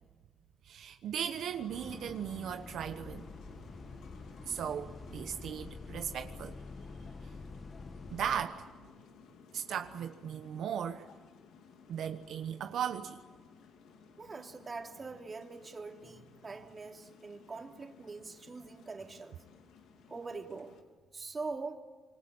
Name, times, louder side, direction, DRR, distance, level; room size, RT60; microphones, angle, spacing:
voice 1, 0.6-3.2 4.5-6.6 8.1-8.6 9.5-11.0 11.9-13.2, right 8 dB, 75° right, 7 dB, 1.2 m, -37 dB
sound 1, 1.2-20.8, left 6 dB, 85° left, 3.0 m, -57 dB
Bus, 1.7-8.5, left 3 dB, 30° left, 1.8 m, -47 dB
voice 2, 14.2-19.4 20.1-20.7 21.1-21.8, right 4 dB, 30° right, 3 dB, 3.2 m, -43 dB
26.0 x 24.0 x 8.9 m, 1.3 s
cardioid pair, 90°, 0 cm